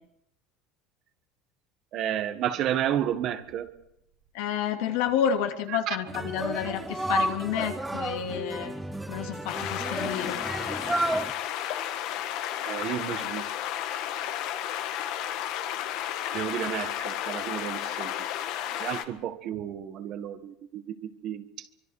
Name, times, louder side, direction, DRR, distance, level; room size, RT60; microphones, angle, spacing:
voice 1, 1.9-3.8 5.9-6.0 12.6-13.5 16.3-18.1 18.8-21.7, right 10 dB, 40° right, 10 dB, 1.4 m, -31 dB
voice 2, 4.3-8.7 9.1-10.4, left 9 dB, 70° left, 4 dB, 2.8 m, -30 dB
sound 1, 6.1-11.3, right 1 dB, 5° right, 0.8 m, -32 dB
sound 2, 9.5-19.0, left 11 dB, 55° left, 1.6 m, -32 dB
25.0 x 24.5 x 4.8 m, 0.77 s
cardioid pair, 165°, 0 cm